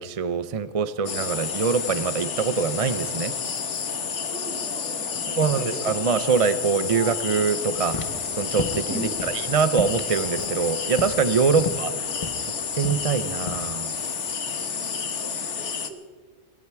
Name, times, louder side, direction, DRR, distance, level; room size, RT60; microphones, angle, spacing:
voice 1, 0.0-3.3 5.4-8.0 8.3-11.9 12.7-13.9, right 5 dB, 40° right, 13 dB, 0.6 m, -24 dB
sound 1, 1.1-15.9, left 6 dB, 75° left, 1.5 m, -30 dB
voice 2, 4.3-5.7 8.9-9.3 11.5-12.3 14.6-16.1, right 1 dB, 65° right, 1 dB, 3.6 m, -44 dB
sound 2, 4.4-9.4 9.6-9.9, left 1 dB, 10° left, 0.5 m, -40 dB
sound 3, 7.8-13.7, left 4 dB, 30° left, 0.9 m, -34 dB
24.5 x 11.5 x 4.7 m, 1.5 s
omnidirectional pair, 1.2 m